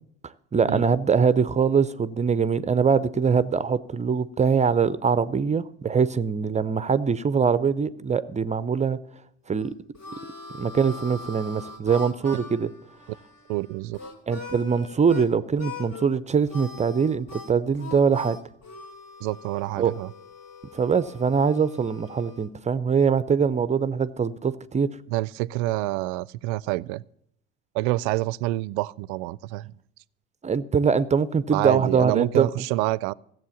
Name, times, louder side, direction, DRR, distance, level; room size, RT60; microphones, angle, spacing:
voice 1, 0.5-9.0 9.5-9.7 10.6-12.7 14.3-18.4 19.8-19.9 20.7-24.9 30.4-32.5, right 6 dB, 20° right, 0.5 m, -23 dB
Harmonica, 9.5-15.3 15.6-16.1 16.5-22.5, left 3 dB, 50° left, 2.6 m, -42 dB
voice 2, 13.5-14.0 19.2-20.1 25.1-27.0 27.7-29.7 31.5-33.1, right 18 dB, 65° right, 0.5 m, -27 dB
14.5 x 7.7 x 7.1 m
hypercardioid pair, 65°, 33 cm